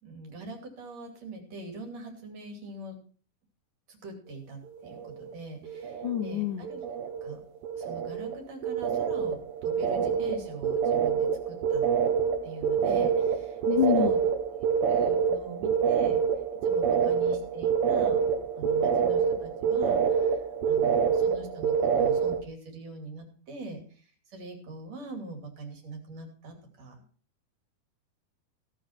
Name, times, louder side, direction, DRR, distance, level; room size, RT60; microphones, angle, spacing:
voice 1, 0.0-3.0 3.9-6.8 7.2-7.4 7.7-11.8 12.4-14.2 14.9-16.2 16.6-18.2 18.6-27.0, right 3 dB, 45° right, 4 dB, 3.7 m, -43 dB
sound 1, 4.8-5.3 5.6-6.4 6.6-22.4, right 7 dB, 85° right, 3.4 m, -27 dB
voice 2, 6.0-6.7 13.7-14.1, left 10 dB, 80° left, 7 dB, 1.8 m, -26 dB
17.0 x 6.4 x 5.9 m, 0.42 s
omnidirectional pair, 4.4 m